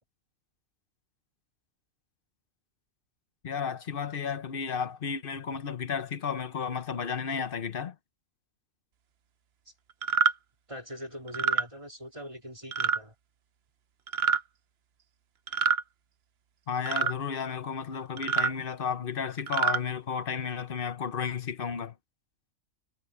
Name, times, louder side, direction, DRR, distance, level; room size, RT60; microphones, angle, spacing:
voice 1, 3.4-8.0 16.7-22.0, left 6 dB, 45° left, 1.1 m, -33 dB
sound 1, 10.0-10.3 11.3-11.6 12.7-13.0 14.1-14.4 15.5-15.8 16.9-17.1 18.2-18.5 19.4-19.8, right 7 dB, 55° right, 0.9 m, -26 dB
voice 2, 10.7-13.1, equal, 25° right, 3.7 m, -42 dB
omnidirectional pair, 1.4 m